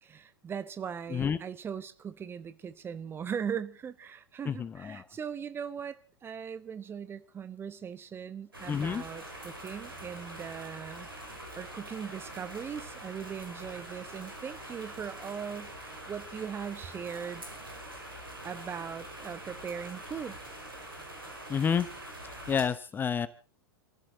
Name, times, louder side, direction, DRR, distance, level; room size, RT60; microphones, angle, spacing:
voice 1, 0.0-11.1 11.6-17.4 18.4-20.4, right 7 dB, 20° right, 13 dB, 1.1 m, -39 dB
voice 2, 4.4-5.1 8.7-9.0 21.5-21.9 22.5-23.3, left 7 dB, 15° left, 16 dB, 0.8 m, -29 dB
sound 1, 8.5-22.7, right 1 dB, 80° right, 5.5 m, -44 dB
29.5 x 14.5 x 2.7 m, 0.37 s
figure-of-eight pair, 95°, 12 cm